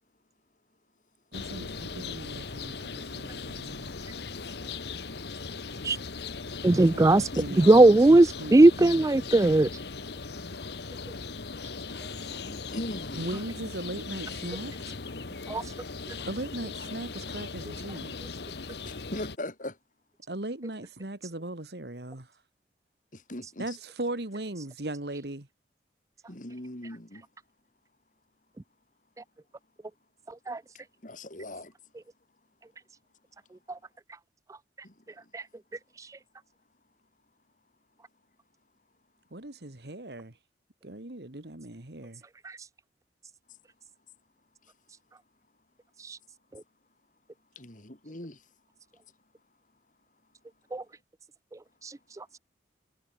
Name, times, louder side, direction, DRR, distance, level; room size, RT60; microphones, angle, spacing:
sound 1, 1.3-19.4, left 4 dB, 65° left, 1.3 m, -39 dB
voice 1, 1.3-3.9 6.7-9.3 13.2-14.7 16.3-18.2 20.3-22.3 23.6-25.5 39.3-40.3 40.8-42.2, right 1 dB, 65° right, 2.0 m, -38 dB
voice 2, 6.6-7.3 7.6-9.7 15.5-15.7 30.5-30.6 33.7-33.8 35.3-35.5 36.0-36.2 42.4-42.6 46.0-46.2 50.7-50.8 51.8-52.4, right 2 dB, 20° right, 0.4 m, -20 dB
voice 3, 12.2-13.3 18.8-19.8 23.1-23.8 26.3-27.3 31.0-31.7 34.8-35.3 44.6-44.7 47.6-48.5, left 1 dB, 45° left, 4.0 m, -40 dB
head